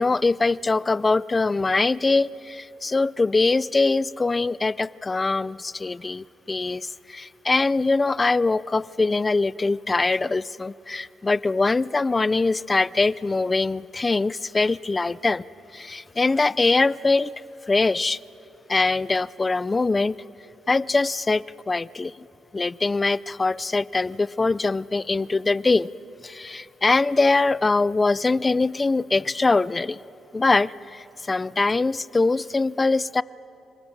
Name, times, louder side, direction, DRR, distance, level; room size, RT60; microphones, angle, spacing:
voice 1, 0.0-15.4 15.7-17.3 17.7-18.2 18.7-20.2 20.7-22.1 22.5-25.9 26.2-30.0 30.3-33.2, left 3 dB, 25° left, 20 dB, 0.4 m, -23 dB
27.5 x 20.0 x 7.2 m, 2.9 s
cardioid pair, 90°, 0 cm